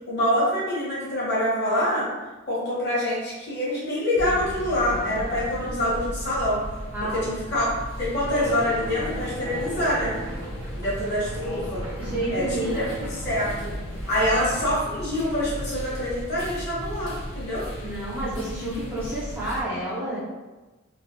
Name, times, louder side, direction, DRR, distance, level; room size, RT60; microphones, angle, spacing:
voice 1, 0.1-2.1 2.5-6.6 7.0-7.7 8.0-10.1 10.7-11.8 12.3-12.9 13.2-13.7 14.1-17.7, left 1 dB, 55° left, -7 dB, 1.2 m, -25 dB
sound 1, 4.1-19.6, equal, 75° left, 0.5 m, -35 dB
voice 2, 6.9-7.3 12.0-12.8 14.2-14.4 17.7-20.2, right 1 dB, 10° right, -9 dB, 0.6 m, -30 dB
sound 2, 8.4-14.8, equal, 70° right, 0.7 m, -41 dB
3.1 x 2.2 x 2.8 m, 1.2 s
head